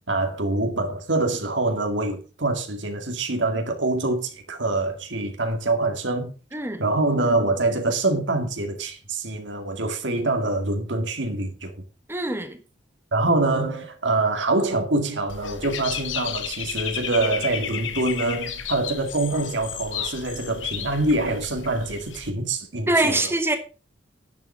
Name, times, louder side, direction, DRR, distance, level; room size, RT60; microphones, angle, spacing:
voice 1, 0.1-6.3 6.8-11.7 13.1-23.2, right 2 dB, 75° right, 2.1 m, -25 dB
voice 2, 6.5-6.8 12.1-12.6 22.9-23.6, right 2 dB, 10° right, 1.1 m, -23 dB
Dog / Bird, 15.3-22.3, left 8 dB, 85° left, 1.4 m, -33 dB
11.0 x 7.2 x 5.5 m
head